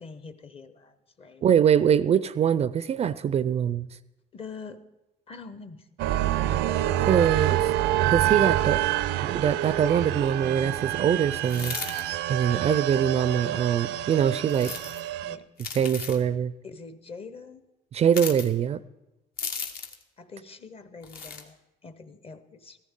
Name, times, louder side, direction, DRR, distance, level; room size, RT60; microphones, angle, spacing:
voice 1, 0.0-1.5 4.3-4.8 5.3-5.9 6.8-7.3 15.2-15.5 16.6-17.7 20.2-22.8, left 4 dB, 35° left, 11 dB, 0.9 m, -44 dB
voice 2, 1.4-3.9 7.1-7.6 8.1-8.9 9.2-11.7 12.3-14.7 15.8-16.5 17.9-18.8, right 8 dB, 40° right, 16 dB, 0.4 m, -23 dB
sound 1, 6.0-15.4, right 14 dB, 90° right, 0.5 m, -27 dB
sound 2, 11.5-12.0 14.5-15.0 15.6-16.2 18.1-18.5 19.4-20.0 21.0-21.4, left 6 dB, 65° left, 1.4 m, -35 dB
14.5 x 14.0 x 3.7 m, 0.96 s
cardioid pair, 110°, 17 cm